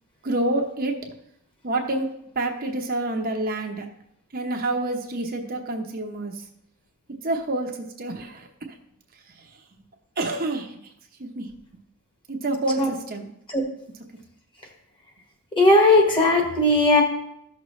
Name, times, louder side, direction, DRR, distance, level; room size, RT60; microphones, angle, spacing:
voice 1, 0.2-1.0 1.6-2.1 2.3-3.9 4.3-6.4 7.2-8.8 9.3-9.6 10.2-10.9 11.2-11.5 12.3-13.3, right 2 dB, 40° right, 2 dB, 0.9 m, -28 dB
voice 2, 15.6-17.0, left 2 dB, 25° left, 2 dB, 1.6 m, -17 dB
13.5 x 6.3 x 3.2 m, 0.76 s
head